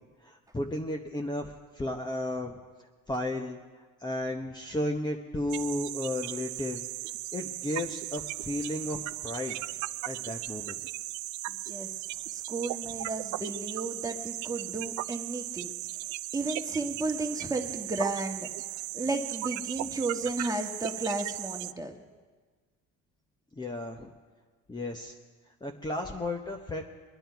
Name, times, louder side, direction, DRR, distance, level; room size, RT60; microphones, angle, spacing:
voice 1, 0.2-2.6 3.1-3.6 4.0-6.9 7.3-9.6 10.1-10.8 23.6-24.1 24.7-25.1 25.6-26.8, left 1 dB, 15° left, 1 dB, 1.0 m, -33 dB
sound 1, 5.5-21.7, right 17 dB, 70° right, 0.4 m, -37 dB
voice 2, 11.5-11.9 12.3-15.7 16.3-18.5 18.9-21.9, right 2 dB, 10° right, 3 dB, 1.6 m, -33 dB
22.0 x 10.0 x 4.6 m, 1.4 s
cardioid pair, 95°, 29 cm